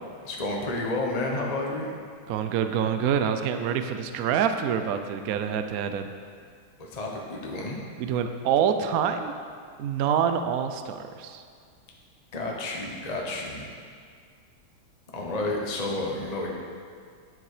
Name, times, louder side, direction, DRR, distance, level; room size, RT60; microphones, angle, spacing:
voice 1, 0.2-2.0 6.8-7.8 12.3-13.7 15.1-16.5, left 2 dB, 30° left, -1 dB, 0.8 m, -30 dB
voice 2, 2.3-6.1 8.0-9.3 9.8-11.4, right 8 dB, 85° right, 8 dB, 0.7 m, -26 dB
10.0 x 7.2 x 4.9 m, 2.1 s
omnidirectional pair, 2.3 m